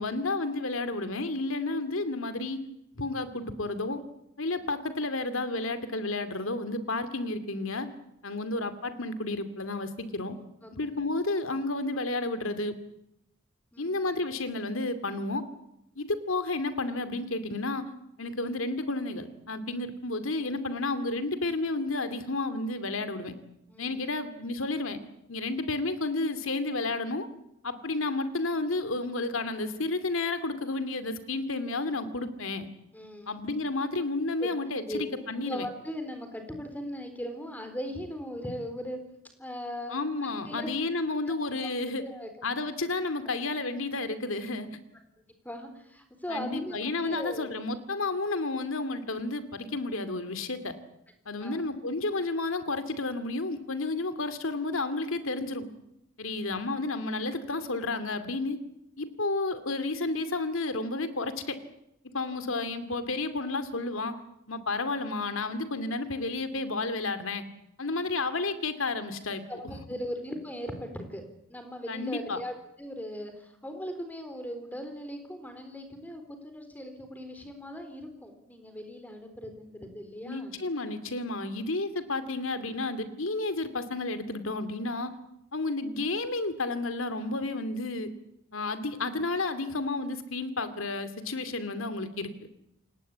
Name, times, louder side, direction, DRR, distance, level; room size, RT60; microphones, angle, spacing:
voice 1, 0.0-2.6 2.9-4.0 4.4-7.9 8.2-10.4 10.7-12.7 13.8-15.4 16.0-17.8 18.2-23.3 23.8-25.0 25.3-27.3 27.6-32.7 33.3-35.7 39.9-42.0 42.4-44.7 46.3-50.7 51.3-55.7 56.2-58.6 59.0-61.6 62.0-64.1 64.5-67.5 67.8-69.8 71.9-72.4 80.2-85.1 85.5-88.1 88.5-92.3, left 2 dB, 70° left, 11 dB, 2.5 m, -31 dB
voice 2, 10.6-11.0 13.7-14.0 23.7-24.1 32.9-33.4 34.4-34.5 34.9-35.0 35.4-39.0 39.4-40.0 40.5-40.7 41.3-41.4 41.6-42.3 45.2-47.5 51.4-51.6 56.3-56.5 69.5-71.2 71.5-80.5, equal, 10° left, 7 dB, 4.1 m, -39 dB
28.5 x 18.5 x 8.6 m, 0.83 s
head